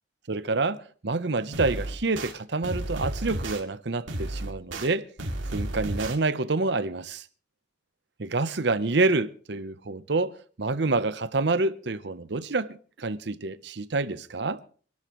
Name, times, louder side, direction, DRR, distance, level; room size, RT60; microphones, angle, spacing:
voice 1, 0.3-5.0 5.4-7.2 8.2-14.6, right 3 dB, 65° right, 0.8 m, -27 dB
sound 1, 1.5-2.3 2.6-3.6 4.1-4.9 5.2-6.2, right 1 dB, 90° right, 2.4 m, -32 dB
26.5 x 12.0 x 3.1 m
head